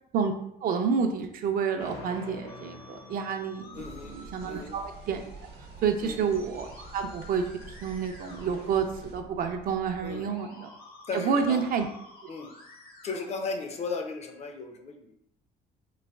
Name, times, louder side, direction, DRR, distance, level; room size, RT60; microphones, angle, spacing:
voice 1, 0.6-5.2 5.8-10.7 11.1-11.9, right 6 dB, 60° right, 5 dB, 0.4 m, -29 dB
sound 1, 1.8-4.7, left 3 dB, 85° left, 1.3 m, -46 dB
Musical instrument, 2.5-14.4, left 2 dB, 60° left, 0.9 m, -51 dB
voice 2, 3.7-4.2 4.5-4.8 6.0-6.2 10.0-10.2 11.1-11.6 12.3-12.5 13.0-15.1, left 4 dB, 40° left, 5 dB, 0.5 m, -35 dB
sound 2, 3.7-9.2, right 3 dB, 75° right, 0.8 m, -47 dB
4.0 x 2.3 x 2.3 m, 0.76 s
cardioid pair, 110°, 17 cm